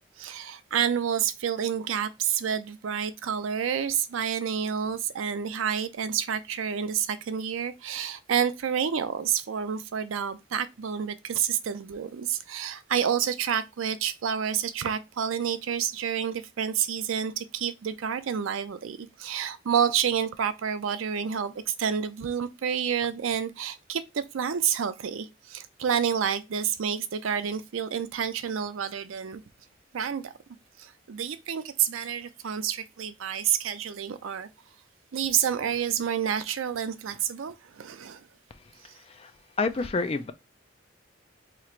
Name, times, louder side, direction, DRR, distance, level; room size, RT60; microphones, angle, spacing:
voice 1, 0.2-29.4 29.9-30.3 30.8-34.5 35.1-38.2 38.8-38.9, right 8 dB, 85° right, 0.4 m, -29 dB
voice 2, 39.0-39.3 39.6-40.3, left 3 dB, 30° left, 0.3 m, -28 dB
2.9 x 2.5 x 4.3 m
head